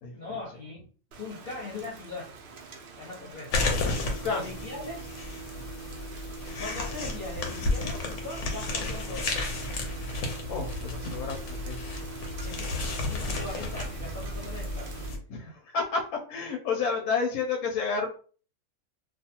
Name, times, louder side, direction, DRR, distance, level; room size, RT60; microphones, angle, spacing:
voice 1, 0.1-0.9 1.2-2.3 3.0-3.5 4.2-5.1 6.6-9.4 12.4-14.9, left 3 dB, 40° left, -7 dB, 0.8 m, -40 dB
Rain, 1.1-15.1, right 4 dB, 85° right, 0.4 m, -47 dB
sound 1, 3.5-15.2, left 2 dB, 65° left, 0.9 m, -32 dB
voice 2, 4.1-4.4 10.5-11.8 15.3-18.1, left 5 dB, 80° left, 0 dB, 1.0 m, -30 dB
2.4 x 2.3 x 2.8 m, 0.41 s
omnidirectional pair, 1.5 m